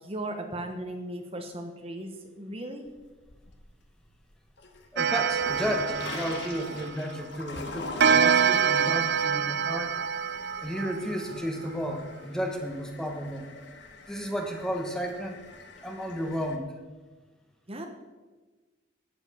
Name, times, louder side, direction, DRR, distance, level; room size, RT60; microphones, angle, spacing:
voice 1, 0.0-2.9 17.7-17.9, right 1 dB, 30° right, 4 dB, 1.0 m, -37 dB
sound 1, 2.9-3.8 4.2-16.6, left 3 dB, 55° left, 1.3 m, -43 dB
voice 2, 4.9-10.0 10.6-13.4 14.1-15.4 15.8-16.7, equal, 5° left, 3 dB, 1.2 m, -33 dB
Clock, 5.0-7.2 8.0-11.4, right 7 dB, 55° right, 0.5 m, -26 dB
12.0 x 9.0 x 5.6 m, 1.3 s
head